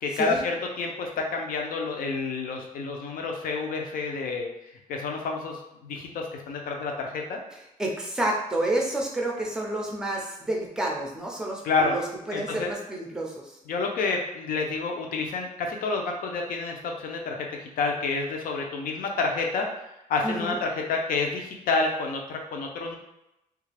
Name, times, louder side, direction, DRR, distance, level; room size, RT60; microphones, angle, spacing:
voice 1, 0.0-4.5 4.9-7.4 11.6-12.0 12.3-12.7 13.7-19.7 20.1-23.0, left 4 dB, 70° left, 2 dB, 0.6 m, -29 dB
voice 2, 7.5-13.6 20.2-20.6, right 1 dB, 5° right, -1 dB, 0.5 m, -30 dB
3.3 x 2.4 x 3.3 m, 0.87 s
wide cardioid pair, 180°, 15 cm